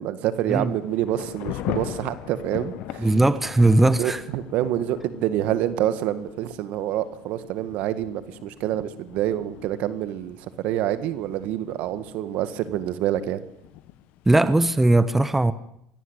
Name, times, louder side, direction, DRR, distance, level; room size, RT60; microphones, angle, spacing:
voice 1, 0.0-3.1 4.0-10.4 10.6-13.4, right 12 dB, 65° right, 13 dB, 1.9 m, -27 dB
Thunder / Rain, 0.5-15.0, left 13 dB, 65° left, 1.4 m, -40 dB
voice 2, 3.0-4.2 14.3-15.5, right 2 dB, 10° right, 14 dB, 1.2 m, -19 dB
24.0 x 17.0 x 8.3 m, 0.75 s
supercardioid pair, 105°, 3 cm